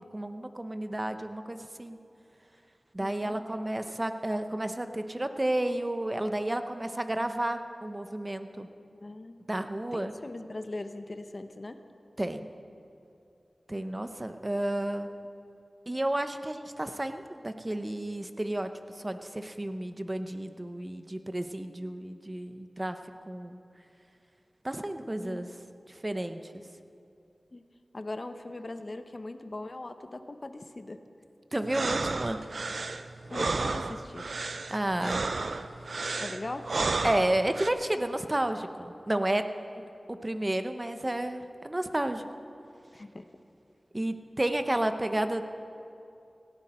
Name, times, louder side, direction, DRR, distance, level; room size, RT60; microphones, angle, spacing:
voice 1, 0.0-2.0 2.9-8.7 9.5-10.1 12.2-12.4 13.7-15.1 15.9-18.7 19.0-23.0 23.3-23.6 24.6-25.5 25.9-26.5 31.5-32.4 34.7-35.2 37.0-39.4 40.1-42.2 43.9-45.4, right 1 dB, 30° right, 8 dB, 1.0 m, -31 dB
voice 2, 3.0-3.4 8.9-9.4 9.9-11.8 25.2-25.5 27.5-27.6 27.9-31.0 33.3-34.3 36.2-36.7 42.9-43.3, left 2 dB, 50° left, 8 dB, 1.0 m, -40 dB
sound 1, 31.6-37.7, right 3 dB, 75° right, 0.5 m, -32 dB
18.0 x 16.5 x 4.4 m, 2.6 s
cardioid pair, 45°, 0 cm